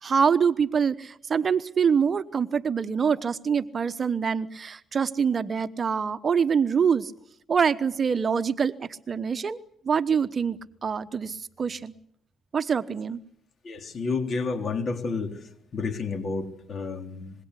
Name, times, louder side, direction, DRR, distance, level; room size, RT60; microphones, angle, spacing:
voice 1, 0.0-7.1 7.5-9.6 9.8-11.9 12.5-13.2, right 6 dB, 40° right, 13 dB, 1.0 m, -25 dB
voice 2, 13.6-15.3 15.7-17.3, left 4 dB, 50° left, 7 dB, 3.5 m, -30 dB
25.5 x 21.5 x 8.3 m, 0.68 s
cardioid pair, 90°, 0 cm